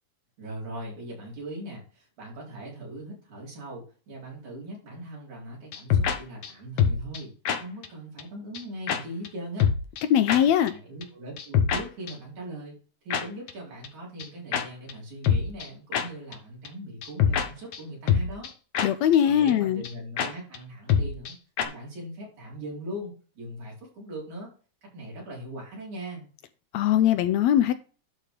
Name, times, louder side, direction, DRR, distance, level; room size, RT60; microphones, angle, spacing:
voice 1, 0.4-9.7 10.2-12.7 13.0-18.5 19.2-21.4 21.6-24.5 24.8-26.3, right 1 dB, 70° right, 6.0 m, -40 dB
sound 1, 5.7-6.2 6.4-6.5 6.8-7.2 7.5-7.6 7.8-7.9 8.2-8.3 8.5-8.6 8.9-9.0 9.2-9.3 9.6-10.0 10.3-10.4 10.7-10.8 11.0-11.1 11.4-11.8 12.1-12.2 13.1-13.2 13.5-13.6 13.8-13.9 14.2-14.3 14.5-14.6 14.9-15.0 15.2-15.7 15.9-16.0 16.3-16.4 16.7-16.8 17.0-17.5 17.7-17.8 18.1-18.5 18.7-18.9 19.1-19.2 19.5-19.6 19.8-19.9 20.2-20.3 20.5-20.6 20.9-21.3 21.6-21.7, left 8 dB, 60° left, 2.1 m, -24 dB
voice 2, 10.1-10.7 18.8-19.8 26.7-27.7, left 10 dB, 80° left, 1.7 m, -21 dB
11.5 x 4.2 x 5.1 m
omnidirectional pair, 3.4 m